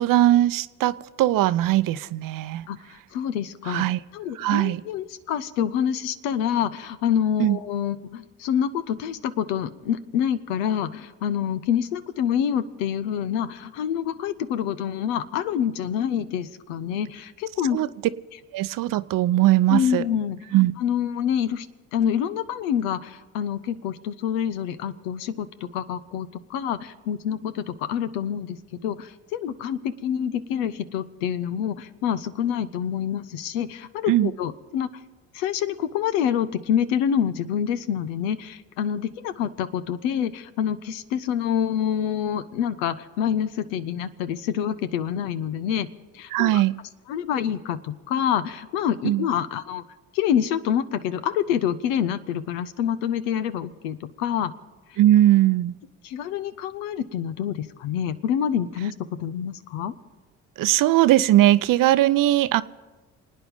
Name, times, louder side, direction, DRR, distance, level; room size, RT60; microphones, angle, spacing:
voice 1, 0.0-2.7 3.7-4.0 4.4-4.8 7.4-7.6 17.7-17.9 18.5-20.0 20.5-20.7 34.1-34.3 46.3-46.7 49.0-49.3 55.0-55.7 60.6-62.6, right 14 dB, 60° right, 16 dB, 0.7 m, -20 dB
voice 2, 2.7-3.8 4.1-17.8 19.7-20.4 20.8-21.7 21.9-34.9 35.3-45.9 46.1-46.6 47.1-49.8 50.1-54.5 54.9-55.0 56.0-58.9 59.2-59.9, left 9 dB, 85° left, 13 dB, 0.8 m, -27 dB
28.0 x 9.4 x 5.4 m, 1.2 s
hypercardioid pair, 60°, 38 cm